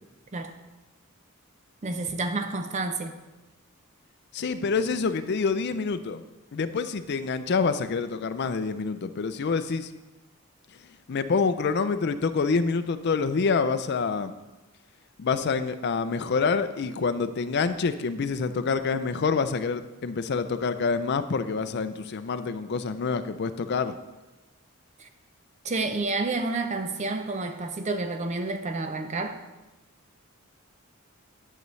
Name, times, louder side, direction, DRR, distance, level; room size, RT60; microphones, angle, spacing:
voice 1, 1.8-3.2 25.0-25.1 25.6-29.4, right 3 dB, 35° right, 7 dB, 0.5 m, -29 dB
voice 2, 4.3-6.2 6.5-9.9 11.1-14.3 15.2-24.0, left 4 dB, 50° left, 11 dB, 0.4 m, -27 dB
10.5 x 6.6 x 3.2 m, 1.1 s
head